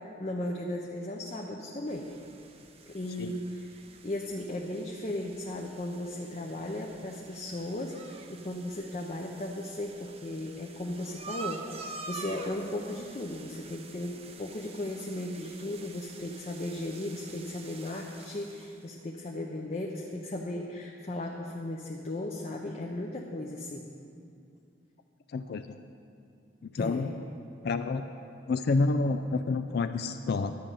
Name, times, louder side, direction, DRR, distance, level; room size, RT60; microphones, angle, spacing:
voice 1, 0.2-2.1 2.9-3.7 4.0-23.9 26.8-27.1, left 1 dB, 35° left, 0 dB, 0.7 m, -36 dB
sound 1, 1.9-18.8, right 4 dB, 30° right, 0.6 m, -47 dB
voice 2, 25.3-25.8 26.6-27.1 27.6-28.1 28.5-30.5, left 3 dB, 55° left, 9 dB, 0.4 m, -29 dB
11.5 x 5.4 x 8.8 m, 2.5 s
head